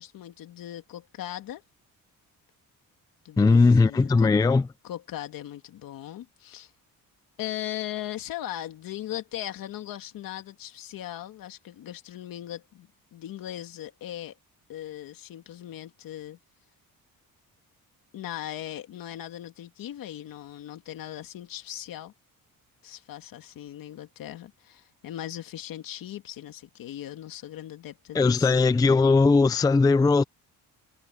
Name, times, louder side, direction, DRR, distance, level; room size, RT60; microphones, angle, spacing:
voice 1, 0.0-1.6 3.2-4.3 4.8-6.7 7.4-14.4 14.7-16.4 18.1-22.1 22.8-28.6, left 12 dB, 75° left, 2.2 m, -38 dB
voice 2, 3.4-4.7 28.1-30.2, left 3 dB, 10° left, 0.4 m, -19 dB
cardioid pair, 165°, 34 cm